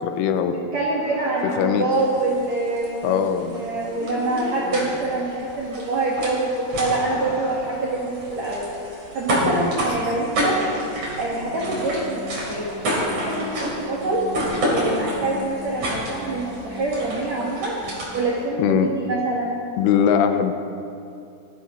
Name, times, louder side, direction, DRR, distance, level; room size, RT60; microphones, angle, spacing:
voice 1, 0.0-0.5 1.6-1.9 3.0-3.6 9.4-9.7 18.6-18.9 19.8-20.5, left 8 dB, 80° left, 8 dB, 3.2 m, -21 dB
voice 2, 0.7-6.5 6.8-8.6 9.1-10.6 11.2-12.8 13.1-14.2 14.7-17.8 18.1-19.6, right 2 dB, 80° right, -4 dB, 1.5 m, -25 dB
sound 1, 0.8-2.2 3.7-5.4 6.5-9.2 10.6-11.6, left 2 dB, 60° left, 3.5 m, -38 dB
sound 2, 1.9-18.4, right 1 dB, 40° right, 4.0 m, -30 dB
sound 3, 10.8-18.6, left 4 dB, 60° right, 0.5 m, -41 dB
19.0 x 14.0 x 3.1 m, 2.6 s
omnidirectional pair, 5.8 m